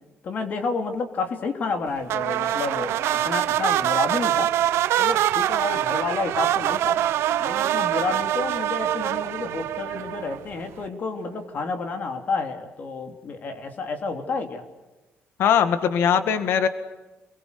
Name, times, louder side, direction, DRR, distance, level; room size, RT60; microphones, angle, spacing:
voice 1, 0.2-4.5 5.0-7.0 7.4-14.6, left 4 dB, 40° left, 5 dB, 3.3 m, -30 dB
sound 1, 2.1-10.5, right 12 dB, 80° right, 0.9 m, -24 dB
voice 2, 15.4-16.7, left 8 dB, 65° left, 10 dB, 1.7 m, -20 dB
30.0 x 23.5 x 6.9 m, 1.1 s
cardioid pair, 165°, 4 cm